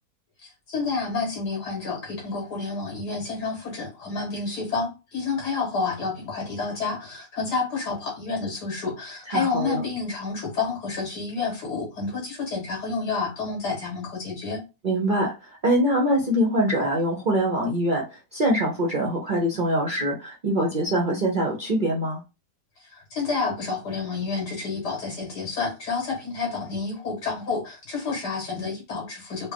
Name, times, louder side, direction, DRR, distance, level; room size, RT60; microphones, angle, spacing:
voice 1, 0.4-14.6 22.8-29.5, left 4 dB, 70° left, 0 dB, 2.2 m, -29 dB
voice 2, 9.3-9.8 14.8-22.2, right 1 dB, 55° right, -1 dB, 0.5 m, -24 dB
4.3 x 2.1 x 3.4 m, 0.28 s
omnidirectional pair, 1.8 m